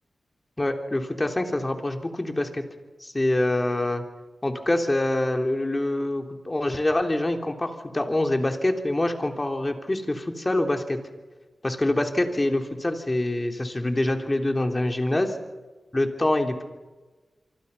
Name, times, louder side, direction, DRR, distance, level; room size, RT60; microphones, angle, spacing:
voice 1, 0.6-2.6 3.0-4.0 4.4-11.0 11.6-15.4 15.9-16.6, left 1 dB, 25° left, 4 dB, 3.5 m, -25 dB
27.5 x 25.0 x 5.7 m, 1.2 s
wide cardioid pair, 70°, 0 cm